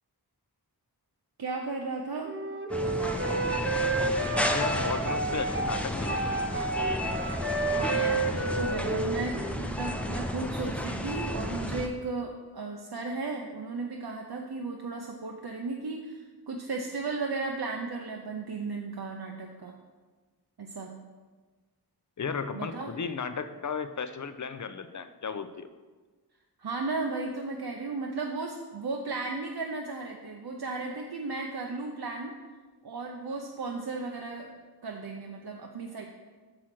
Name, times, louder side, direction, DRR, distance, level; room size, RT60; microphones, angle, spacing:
voice 1, 1.4-2.4 7.8-19.7 20.6-20.9 22.5-22.9 26.6-32.3 32.8-34.5 34.8-36.1, right 3 dB, 65° right, 1 dB, 0.7 m, -35 dB
Wind instrument woodwind instrument, 2.2-9.7, right 2 dB, 30° right, 0.7 m, -30 dB
sound 1, 2.7-11.9, left 1 dB, 5° left, 0.6 m, -32 dB
voice 2, 4.5-6.4 22.2-25.7, left 5 dB, 50° left, 11 dB, 0.5 m, -34 dB
6.2 x 4.9 x 5.9 m, 1.4 s
wide cardioid pair, 45°, 40 cm